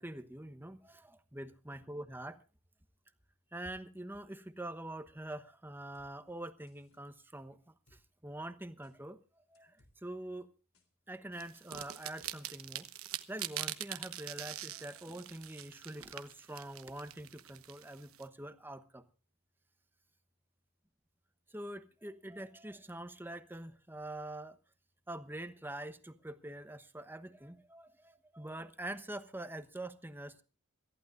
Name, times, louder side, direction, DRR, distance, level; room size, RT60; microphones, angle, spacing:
voice 1, 0.0-2.4 3.5-7.7 8.2-9.2 9.5-10.5 11.1-12.9 13.3-19.0 21.5-24.6 25.1-30.4, right 1 dB, 10° right, 11 dB, 1.0 m, -45 dB
sound 1, 5.9-6.1 6.7-7.0 7.9-8.0 8.8-9.0 9.5-9.9 10.7-10.9 11.7-11.8 12.2-12.3 12.7-12.8 13.4-13.5, left 1 dB, 80° left, 3.5 m, -67 dB
sound 2, 11.4-18.2, right 13 dB, 85° right, 1.1 m, -43 dB
27.0 x 14.5 x 2.6 m, 0.33 s
head